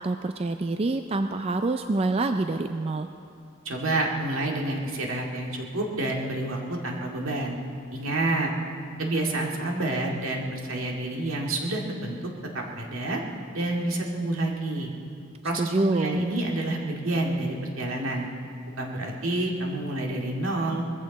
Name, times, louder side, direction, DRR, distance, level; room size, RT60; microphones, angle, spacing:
voice 1, 0.0-3.1 15.6-16.2, right 2 dB, 30° right, 7 dB, 0.4 m, -26 dB
voice 2, 3.7-7.6 7.9-8.5 9.0-12.2 12.5-13.2 13.5-14.9 15.4-18.3 18.8-20.8, right 2 dB, 75° right, 0 dB, 2.2 m, -28 dB
21.0 x 15.0 x 4.1 m, 2.4 s
head